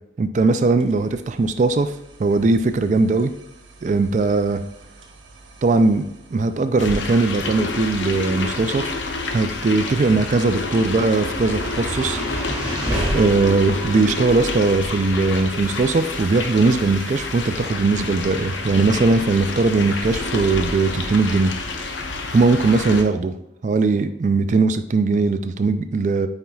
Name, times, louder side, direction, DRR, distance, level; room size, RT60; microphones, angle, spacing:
voice 1, 0.2-1.9 2.2-3.3 3.8-4.6 5.6-8.9 9.3-12.2 13.1-21.5 22.3-23.4 23.6-26.3, right 3 dB, 40° right, 10 dB, 0.3 m, -19 dB
sound 1, 0.7-12.3, right 3 dB, 90° right, 1.1 m, -48 dB
sound 2, 6.8-23.0, left 3 dB, 80° left, 0.7 m, -29 dB
sound 3, 10.5-22.7, right 1 dB, 10° right, 1.6 m, -33 dB
9.2 x 4.5 x 2.3 m, 0.81 s
head